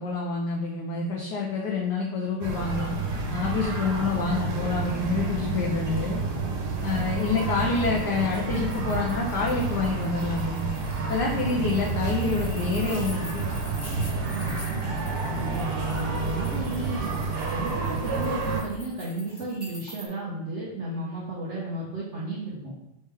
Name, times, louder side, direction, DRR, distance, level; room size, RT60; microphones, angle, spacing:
voice 1, 0.0-2.9 3.3-6.2 6.8-10.6 11.1-13.4, left 4 dB, 70° left, -3 dB, 1.0 m, -27 dB
sound 1, 2.4-18.6, right 4 dB, 80° right, 1.7 m, -30 dB
sound 2, 6.8-20.1, left 1 dB, 10° left, 1.2 m, -47 dB
voice 2, 14.3-14.9 15.2-17.1 17.5-22.7, right 2 dB, 60° right, -7 dB, 0.7 m, -33 dB
4.2 x 3.5 x 3.3 m, 0.93 s
omnidirectional pair, 2.4 m